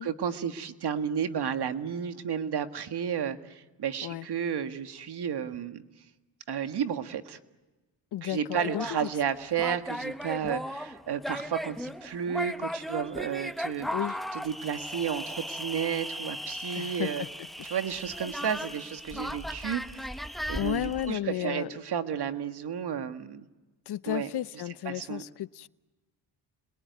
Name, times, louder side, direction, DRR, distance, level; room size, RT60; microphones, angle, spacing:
voice 1, 0.0-5.8 6.5-7.4 8.2-13.9 14.3-17.2 17.6-20.1 20.5-23.5 24.1-24.3 24.9-25.2, right 8 dB, 60° right, 1.8 m, -32 dB
voice 2, 8.1-9.1 13.9-14.1 16.7-17.3 19.1-19.2 20.5-21.7 23.9-25.7, left 12 dB, 60° left, 0.8 m, -33 dB
sound 1, 8.5-21.1, equal, ahead, 1.1 m, -37 dB
29.0 x 21.5 x 9.4 m
cardioid pair, 70°, 44 cm